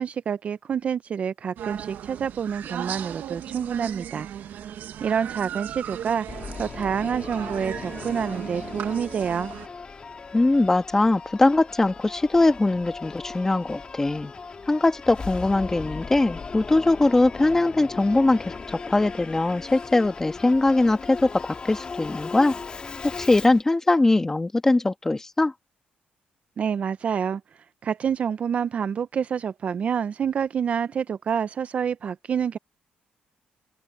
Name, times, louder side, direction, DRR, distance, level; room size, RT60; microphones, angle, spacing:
voice 1, 0.0-4.3 5.0-6.3 6.6-9.5 26.6-27.4 27.8-32.6, right 7 dB, 40° right, 0.5 m, -27 dB
sound 1, 1.6-9.7, right 10 dB, 70° right, 1.2 m, -37 dB
Singing / Musical instrument, 6.3-23.6, left 4 dB, 30° left, 2.4 m, -38 dB
voice 2, 10.3-14.3 14.7-22.5 23.2-25.5, left 2 dB, 15° left, 1.6 m, -21 dB
open air
cardioid pair, 135°, 3 cm